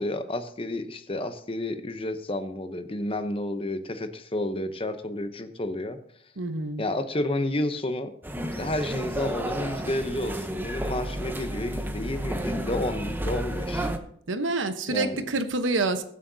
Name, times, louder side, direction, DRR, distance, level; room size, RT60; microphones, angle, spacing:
voice 1, 0.0-6.0 6.8-8.1 8.6-13.9 14.9-15.2, left 1 dB, 30° left, 9 dB, 0.8 m, -30 dB
voice 2, 6.4-6.8 14.3-16.0, right 3 dB, 85° right, 9 dB, 1.0 m, -27 dB
sound 1, 8.2-14.0, right 1 dB, 10° right, 0.8 m, -31 dB
21.5 x 7.5 x 2.7 m, 0.65 s
head